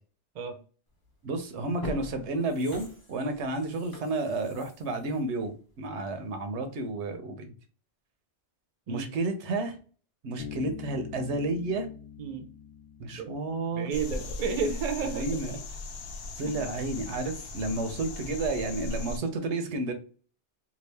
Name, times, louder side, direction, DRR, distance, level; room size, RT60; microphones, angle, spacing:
sound 1, 1.0-1.2 1.6-6.3 6.7-6.8, right 1 dB, 20° left, 0.8 m, -42 dB
voice 1, 1.2-7.5 8.9-9.7 10.2-11.9 13.0-13.9 15.0-15.6 16.4-19.9, right 2 dB, 75° right, 7 dB, 0.9 m, -31 dB
Bass guitar, 10.4-14.1, left 9 dB, 60° left, 0.7 m, -44 dB
voice 2, 13.7-15.4 16.4-16.6, right 5 dB, 45° right, 4 dB, 0.5 m, -32 dB
sound 2, 13.9-19.2, left 2 dB, 90° left, 0.9 m, -38 dB
2.8 x 2.3 x 3.2 m, 0.39 s
omnidirectional pair, 1.2 m